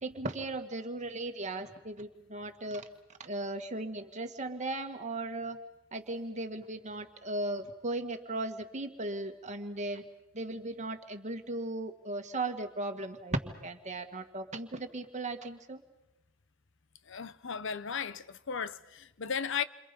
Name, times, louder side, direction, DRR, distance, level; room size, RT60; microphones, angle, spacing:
voice 1, 0.0-2.8 3.2-5.6 5.9-10.0 10.3-15.8, right 2 dB, 35° right, 1.8 m, -37 dB
voice 2, 17.1-19.6, left 6 dB, 65° left, 0.9 m, -35 dB
28.5 x 27.0 x 5.4 m
head